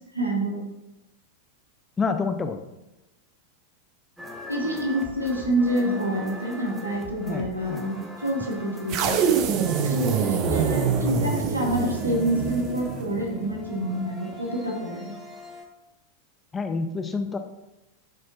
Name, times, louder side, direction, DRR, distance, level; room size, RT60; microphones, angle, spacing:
voice 1, 0.1-0.7 4.5-9.3 9.8-15.1, right 1 dB, 80° right, 0 dB, 1.4 m, -27 dB
voice 2, 2.0-2.6 7.3-7.8 10.4-10.6 16.5-17.4, left 4 dB, 15° left, 7 dB, 0.5 m, -28 dB
sound 1, 4.2-15.6, left 2 dB, 10° right, 1.2 m, -40 dB
sound 2, 8.9-13.2, right 6 dB, 40° right, 0.6 m, -25 dB
10.5 x 4.3 x 2.5 m, 0.97 s
figure-of-eight pair, 90°, 0 cm